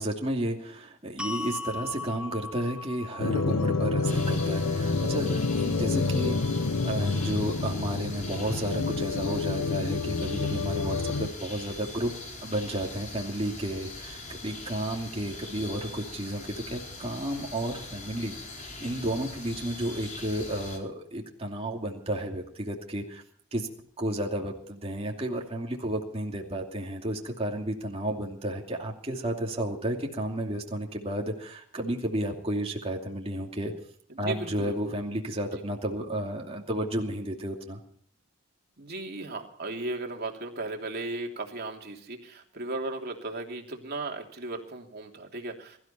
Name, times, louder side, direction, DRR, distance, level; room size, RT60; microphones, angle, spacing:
voice 1, 0.0-6.5 6.8-12.1 12.4-23.2 23.5-23.7 24.0-33.7 34.2-37.8, right 1 dB, 30° right, 0 dB, 2.7 m, -32 dB
sound 1, 1.2-7.4, left 3 dB, 5° right, 1.3 m, -41 dB
sound 2, 3.2-11.3, left 3 dB, 85° left, 1.1 m, -28 dB
sound 3, 4.0-20.8, left 2 dB, 35° left, 4.6 m, -42 dB
voice 2, 34.1-34.8 38.8-45.8, right 2 dB, 50° right, 2 dB, 3.1 m, -36 dB
23.0 x 13.5 x 4.4 m, 0.63 s
head